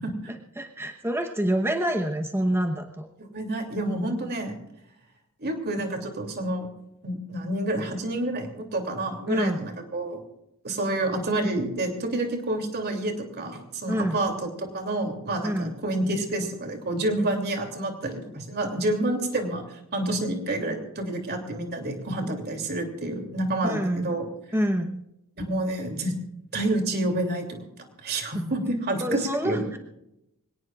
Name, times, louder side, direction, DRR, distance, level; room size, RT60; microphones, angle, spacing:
voice 1, 0.3-3.1 9.3-9.6 13.9-14.2 15.4-15.7 23.6-24.1 24.5-25.0 29.0-29.8, equal, 10° right, 3 dB, 1.0 m, -27 dB
voice 2, 3.2-4.6 5.4-6.7 7.0-10.2 10.6-19.6 19.9-24.2 25.4-26.1 26.5-27.7 28.0-29.7, right 1 dB, 45° right, 3 dB, 3.0 m, -28 dB
25.5 x 18.0 x 2.5 m, 0.86 s
head